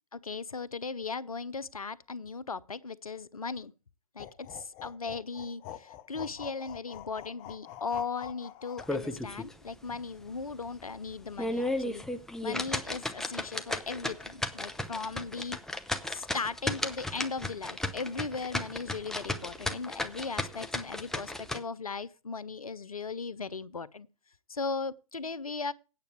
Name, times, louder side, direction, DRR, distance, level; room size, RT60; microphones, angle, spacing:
voice 1, 0.1-3.7 4.1-12.0 12.4-15.6 16.1-24.1 24.5-25.7, left 4 dB, 90° left, 0.7 m, -37 dB
sound 1, 4.2-8.9, left 12 dB, 30° left, 0.8 m, -46 dB
sound 2, 8.8-9.5 9.9-10.0 10.5-10.6 11.2-21.6, left 2 dB, 5° left, 0.8 m, -34 dB
9.0 x 6.7 x 8.0 m
figure-of-eight pair, 125°, 18 cm